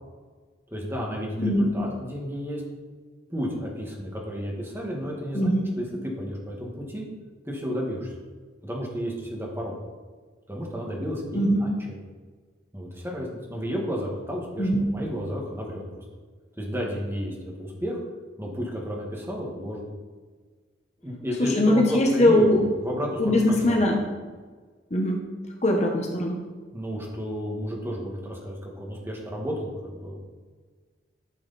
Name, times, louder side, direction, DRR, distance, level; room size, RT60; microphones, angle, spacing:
voice 1, 0.7-2.6 3.3-7.0 7.5-8.1 8.6-9.7 10.5-12.0 12.7-15.8 16.6-18.0 18.4-19.9 21.0-22.5 22.8-23.8 26.7-30.2, equal, 15° right, -2 dB, 1.8 m, -32 dB
voice 2, 1.4-1.7 5.3-5.7 11.3-11.7 14.6-14.9 21.4-22.6 23.2-24.1 24.9-25.2 25.6-26.4, left 1 dB, 35° left, 1 dB, 1.1 m, -21 dB
11.5 x 6.5 x 4.2 m, 1.4 s
head